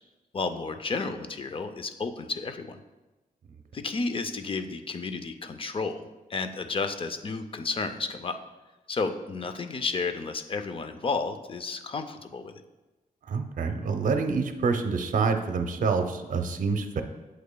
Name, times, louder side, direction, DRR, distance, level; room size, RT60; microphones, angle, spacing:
voice 1, 0.3-2.8 3.7-8.4 8.9-12.6, left 4 dB, 35° left, 8 dB, 0.5 m, -32 dB
voice 2, 13.3-17.0, right 4 dB, 65° right, 6 dB, 0.6 m, -27 dB
8.1 x 7.8 x 2.2 m, 1.1 s
wide cardioid pair, 145°, 15 cm